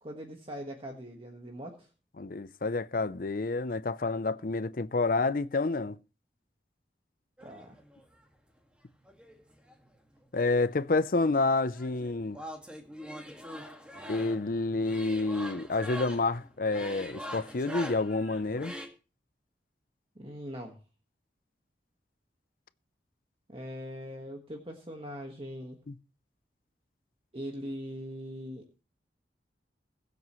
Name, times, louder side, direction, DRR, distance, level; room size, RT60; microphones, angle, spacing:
voice 1, 0.0-1.9 7.4-7.8 20.1-20.8 23.5-25.8 27.3-28.6, equal, 30° right, 1.5 m, -41 dB
voice 2, 2.2-6.0 10.3-12.4 14.1-18.7 25.9-26.0, left 3 dB, 50° left, 0.6 m, -29 dB
sound 1, 7.4-8.2 9.1-10.2 10.5-18.9, equal, 5° right, 1.9 m, -44 dB
22.0 x 7.8 x 3.1 m
head